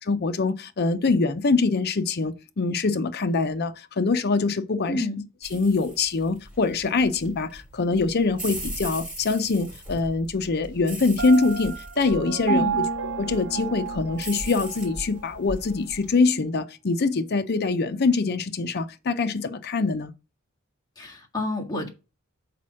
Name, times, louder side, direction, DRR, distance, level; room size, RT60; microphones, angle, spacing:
voice 1, 0.1-5.1 5.5-12.7 13.2-20.1, left 3 dB, 50° left, 0.6 m, -24 dB
voice 2, 4.9-5.2 12.5-12.9 21.0-21.9, left 1 dB, 20° left, 1.7 m, -28 dB
sound 1, 5.4-16.1, right 1 dB, 5° right, 3.2 m, -39 dB
Piano, 11.2-15.0, right 7 dB, 65° right, 1.0 m, -31 dB
5.9 x 4.2 x 6.2 m
head